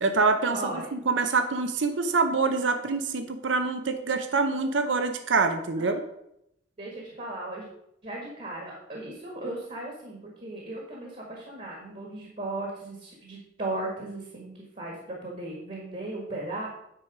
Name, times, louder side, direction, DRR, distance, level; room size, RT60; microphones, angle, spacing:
voice 1, 0.0-6.0, right 4 dB, 80° right, 8 dB, 0.7 m, -25 dB
voice 2, 0.5-0.9 5.8-6.0 6.8-7.7 8.0-16.7, right 2 dB, 40° right, -1 dB, 1.6 m, -36 dB
9.1 x 4.7 x 4.9 m, 0.79 s
head